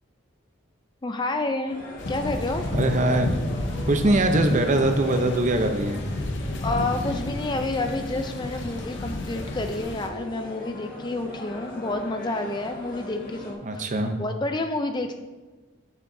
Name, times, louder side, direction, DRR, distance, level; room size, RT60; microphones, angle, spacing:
voice 1, 1.0-1.8 2.1-2.7 6.6-13.9 14.2-15.1, left 2 dB, 20° left, 6 dB, 0.4 m, -29 dB
sound 1, 1.7-13.5, left 1 dB, 40° left, 1.6 m, -40 dB
sound 2, 2.0-10.1, left 1 dB, 60° left, 0.8 m, -31 dB
voice 2, 2.7-3.3 3.9-6.0 13.6-14.2, right 1 dB, 35° right, 6 dB, 0.6 m, -22 dB
9.9 x 7.0 x 2.7 m, 1.2 s
head